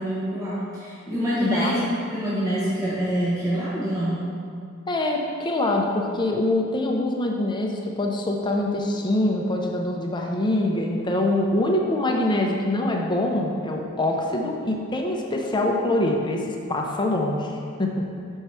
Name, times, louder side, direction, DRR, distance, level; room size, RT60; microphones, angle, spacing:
voice 1, 0.0-4.3, equal, 15° right, -10 dB, 1.1 m, -26 dB
voice 2, 1.4-1.8 4.9-18.0, left 1 dB, 20° left, 0 dB, 0.6 m, -24 dB
5.4 x 4.6 x 6.1 m, 2.3 s
head